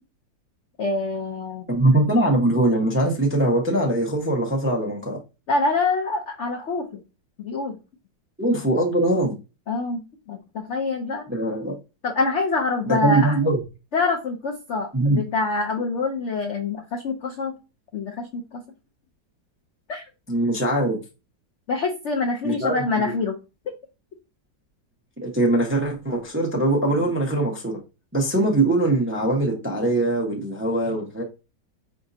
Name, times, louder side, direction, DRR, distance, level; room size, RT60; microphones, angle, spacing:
voice 1, 0.8-1.7 5.5-7.0 7.4-7.8 9.7-10.0 10.3-11.3 12.0-13.4 13.9-17.5 17.9-18.6 19.9-20.1 21.7-23.4, left 3 dB, 85° left, 2 dB, 0.6 m, -25 dB
voice 2, 1.7-5.2 8.4-9.3 11.3-11.8 12.9-13.6 14.9-15.2 20.3-21.0 22.4-23.1 25.2-27.7 28.1-31.2, right 1 dB, 15° right, 0 dB, 0.4 m, -22 dB
5.0 x 3.6 x 2.6 m, 0.29 s
omnidirectional pair, 2.0 m